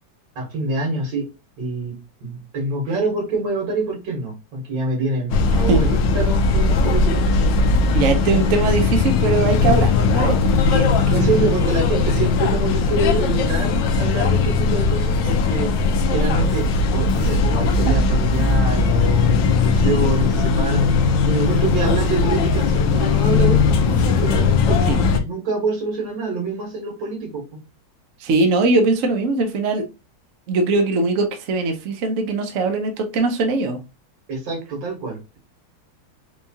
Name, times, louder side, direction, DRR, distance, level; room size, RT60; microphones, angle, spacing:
voice 1, 0.4-1.2 1.6-1.9 2.2-7.5 11.1-15.7 16.1-16.6 16.9-21.0 21.3-23.6 23.9-27.4 34.3-35.4, right 3 dB, 85° right, 0 dB, 2.1 m, -26 dB
sound 1, 5.3-25.2, left 4 dB, 90° left, 1.3 m, -18 dB
voice 2, 7.9-10.4 10.7-11.5 24.9-25.0 28.2-29.8 30.5-33.8, right 3 dB, 60° right, 6 dB, 0.8 m, -21 dB
4.5 x 2.3 x 2.7 m, 0.27 s
omnidirectional pair, 2.0 m